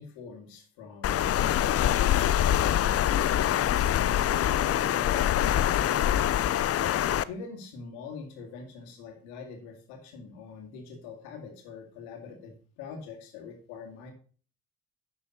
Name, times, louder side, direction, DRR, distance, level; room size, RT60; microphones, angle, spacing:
voice 1, 0.0-6.3 7.3-14.1, left 5 dB, 75° left, 3 dB, 2.1 m, -44 dB
Water, 1.0-7.2, left 11 dB, 40° left, 0.5 m, -24 dB
11.0 x 6.2 x 4.0 m, 0.43 s
hypercardioid pair, 45°, 38 cm